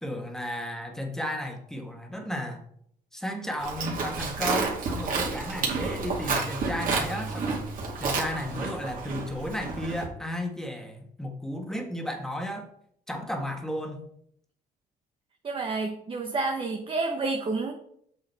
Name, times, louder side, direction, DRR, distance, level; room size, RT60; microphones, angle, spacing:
voice 1, 0.0-2.6 3.1-7.6 8.0-12.7 13.1-14.1, equal, 5° left, 3 dB, 1.6 m, -34 dB
Livestock farm animals working animals, 3.6-10.1, right 4 dB, 55° right, 2.9 m, -30 dB
voice 2, 15.4-17.7, right 3 dB, 30° right, 2 dB, 1.1 m, -29 dB
7.8 x 6.5 x 4.2 m, 0.67 s
cardioid pair, 110°, 17 cm